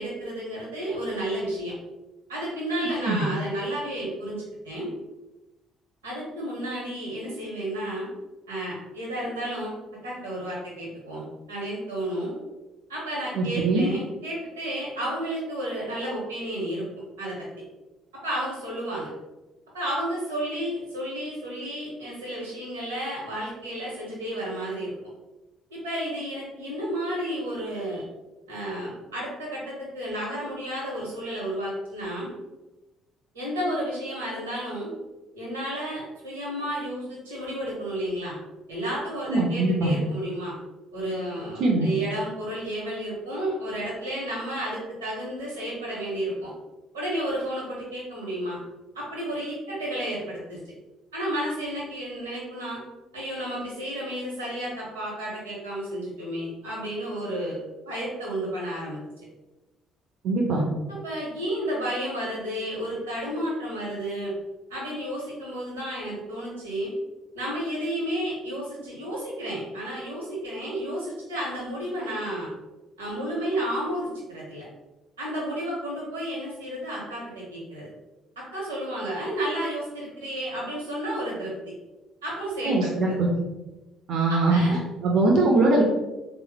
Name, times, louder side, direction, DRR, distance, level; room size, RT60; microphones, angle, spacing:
voice 1, 0.0-1.7 2.3-4.9 6.0-8.1 8.5-9.7 10.0-12.3 12.9-16.8 17.2-17.5 18.2-19.1 19.7-24.9 25.7-28.0 28.5-32.3 33.3-34.9 35.3-38.4 38.7-40.5 40.9-46.5 46.9-48.6 48.9-50.6 51.1-52.8 53.1-57.6 57.9-59.0 61.0-64.3 64.7-66.9 67.3-72.5 73.0-74.6 75.2-77.9 78.4-81.5 82.2-83.1 84.3-84.8, right 1 dB, 80° right, -4 dB, 0.9 m, -32 dB
voice 2, 13.3-13.9 39.3-39.9 41.6-41.9 60.2-60.6 82.6-83.3 84.1-85.8, right 2 dB, 55° right, -1 dB, 0.5 m, -22 dB
3.3 x 2.0 x 3.2 m, 1.1 s
figure-of-eight pair, 50°, 0 cm